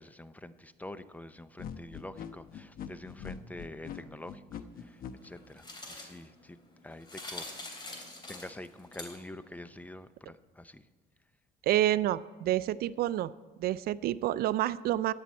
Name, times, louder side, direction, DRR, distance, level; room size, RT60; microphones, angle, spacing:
voice 1, 0.0-6.6 6.8-7.5 8.3-10.8, left 1 dB, 10° left, 13 dB, 0.5 m, -46 dB
sound 1, 1.6-5.1, left 7 dB, 60° left, 1.0 m, -42 dB
sound 2, 4.8-9.5, left 2 dB, 25° left, 3.0 m, -46 dB
voice 2, 11.6-13.3 13.6-15.1, right 13 dB, 65° right, 17 dB, 0.4 m, -28 dB
14.5 x 10.5 x 4.3 m, 1.5 s
cardioid pair, 110°, 17 cm